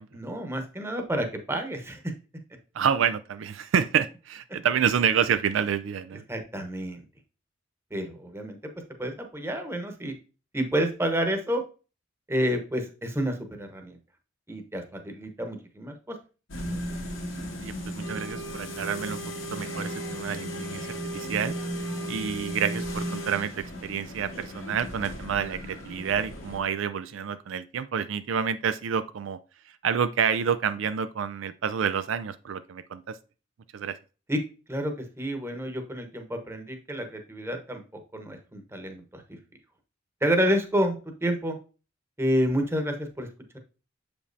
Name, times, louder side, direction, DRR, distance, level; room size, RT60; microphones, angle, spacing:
voice 1, 0.1-2.0 6.3-7.0 7.9-8.6 9.0-10.1 10.5-11.6 12.3-14.0 14.5-16.1 34.3-34.4 34.7-37.8 38.1-39.2 40.2-41.0 41.2-41.6 42.2-43.3, equal, 15° right, 5 dB, 1.0 m, -29 dB
voice 2, 2.7-6.2 17.6-19.2 19.5-21.5 22.1-23.5 23.8-29.4 29.8-33.2 33.7-34.0, right 7 dB, 70° right, 12 dB, 0.4 m, -28 dB
sound 1, 16.5-26.6, equal, 90° left, 2.1 m, -35 dB
7.0 x 5.2 x 2.7 m, 0.34 s
head